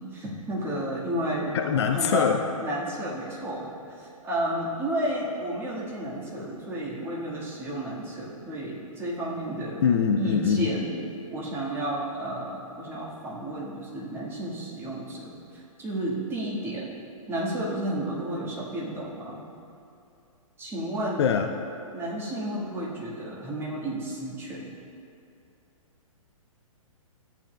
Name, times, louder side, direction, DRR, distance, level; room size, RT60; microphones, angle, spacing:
voice 1, 0.0-2.3 2.6-3.7 4.0-9.8 10.2-11.0 11.3-16.9 17.3-19.4 20.6-21.3 21.9-24.7, right 1 dB, 15° right, -5 dB, 1.5 m, -32 dB
voice 2, 1.5-2.4 9.8-10.7 21.2-21.5, left 7 dB, 50° left, 5 dB, 0.5 m, -23 dB
13.5 x 8.6 x 2.2 m, 2.7 s
figure-of-eight pair, 120°, 18 cm